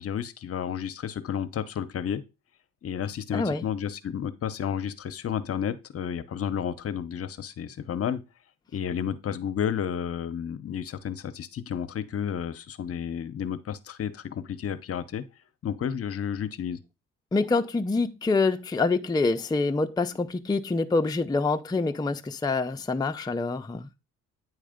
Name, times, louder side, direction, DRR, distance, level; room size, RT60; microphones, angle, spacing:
voice 1, 0.0-2.2 2.8-8.2 8.7-15.2 15.6-16.8, left 8 dB, 50° left, 0.8 m, -31 dB
voice 2, 3.3-3.6 17.3-23.9, left 3 dB, 15° left, 0.5 m, -26 dB
9.3 x 3.3 x 5.1 m
cardioid pair, 90°, 30 cm